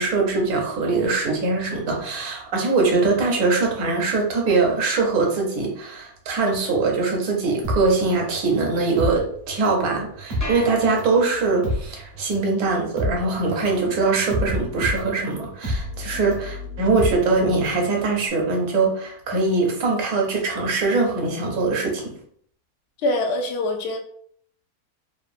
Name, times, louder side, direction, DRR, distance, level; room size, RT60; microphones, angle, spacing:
voice 1, 0.0-22.0, right 3 dB, 75° right, 1 dB, 1.1 m, -22 dB
sound 1, 7.6-9.9 10.1-17.8 18.1-18.2, left 1 dB, 55° right, 0.5 m, -29 dB
sound 2, 10.4-11.8, equal, 20° left, 0.5 m, -36 dB
voice 2, 23.0-24.0, left 2 dB, 75° left, 3 dB, 0.6 m, -24 dB
3.0 x 2.1 x 2.4 m, 0.63 s
omnidirectional pair, 1.6 m